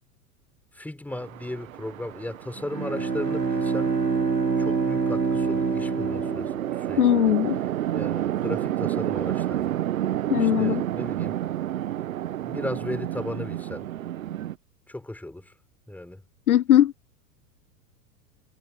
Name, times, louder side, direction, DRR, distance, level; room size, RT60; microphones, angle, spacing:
voice 1, 0.7-4.0 4.6-7.3 7.9-9.8 10.4-11.4 12.4-13.9 14.9-15.5 15.9-16.2, left 1 dB, 5° left, 5.0 m, -36 dB
Chatter / Traffic noise roadway noise / Train, 1.1-14.6, right 12 dB, 55° right, 1.7 m, -31 dB
Bowed string instrument, 2.6-7.3, right 5 dB, 85° right, 2.0 m, -26 dB
voice 2, 7.0-7.6 10.3-10.8 16.5-16.9, left 12 dB, 65° left, 0.8 m, -19 dB
figure-of-eight pair, 95°, 48 cm